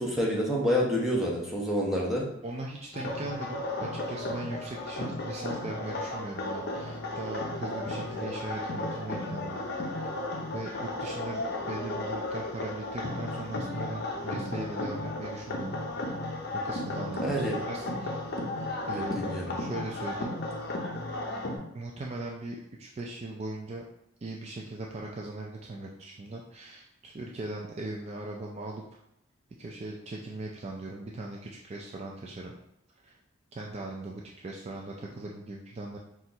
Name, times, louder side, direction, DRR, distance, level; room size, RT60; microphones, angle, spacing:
voice 1, 0.0-2.3 17.2-17.6 18.9-19.5, equal, ahead, -4 dB, 0.8 m, -28 dB
voice 2, 2.4-9.7 10.0-10.1 10.5-15.8 16.5-18.2 18.9-19.3 19.6-20.4 21.7-23.8 24.2-28.8 29.6-32.5 33.0-33.1 33.5-36.0, right 2 dB, 30° right, -1 dB, 0.3 m, -39 dB
sound 1, 2.9-21.6, left 2 dB, 50° left, 0.6 m, -34 dB
4.3 x 2.4 x 3.9 m, 0.79 s
head